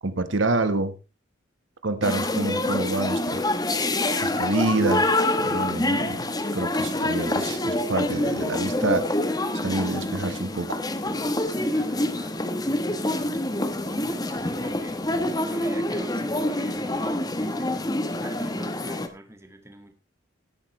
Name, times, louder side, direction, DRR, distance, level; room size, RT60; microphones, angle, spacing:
voice 1, 0.0-0.9 1.8-3.4 4.2-5.1 5.4-6.3 6.5-9.1 9.6-10.8, right 2 dB, 90° right, 1.3 m, -27 dB
sound 1, 2.0-19.1, left 1 dB, 20° left, 1.1 m, -26 dB
voice 2, 11.6-19.9, right 1 dB, 15° right, 1.9 m, -45 dB
17.0 x 8.7 x 3.2 m
head